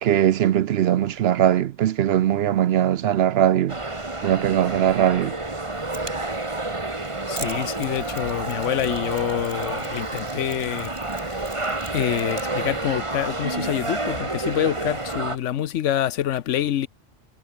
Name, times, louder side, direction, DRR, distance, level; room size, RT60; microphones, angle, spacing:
voice 1, 0.0-3.7 4.2-5.3, right 11 dB, 65° right, 0.7 m, -20 dB
sound 1, 3.7-15.4, right 2 dB, 25° right, 2.0 m, -29 dB
Mechanisms, 5.7-12.9, right 2 dB, 40° right, 4.0 m, -44 dB
voice 2, 7.3-11.5 11.9-16.9, left 11 dB, 80° left, 1.0 m, -26 dB
omnidirectional pair, 1.3 m